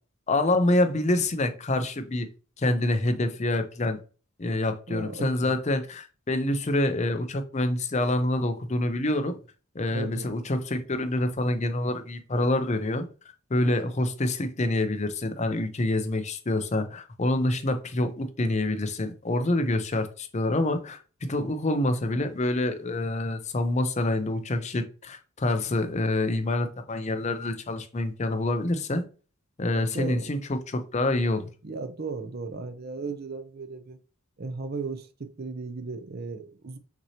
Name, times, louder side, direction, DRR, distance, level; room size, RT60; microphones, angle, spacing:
voice 1, 0.3-2.3 2.6-4.0 4.4-9.3 9.7-13.1 13.5-29.0 29.6-31.5, left 2 dB, 30° left, 0.5 m, -26 dB
voice 2, 4.9-5.5 9.9-10.3 29.7-30.3 31.6-34.0 34.4-36.8, right 3 dB, 45° right, 0.6 m, -36 dB
5.9 x 2.9 x 2.8 m
head